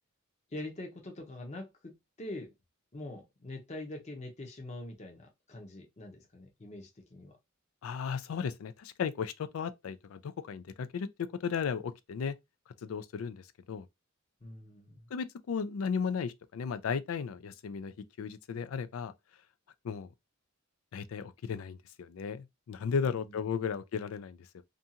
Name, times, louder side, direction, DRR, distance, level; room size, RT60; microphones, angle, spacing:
voice 1, 0.5-2.5 2.9-7.4 14.4-15.0 23.0-23.4, left 1 dB, 35° left, 0.7 m, -44 dB
voice 2, 7.8-12.4 12.8-13.9 15.1-17.9 18.2-19.1 19.8-20.1 20.9-24.6, left 6 dB, 80° left, 0.4 m, -35 dB
2.6 x 2.3 x 2.7 m
head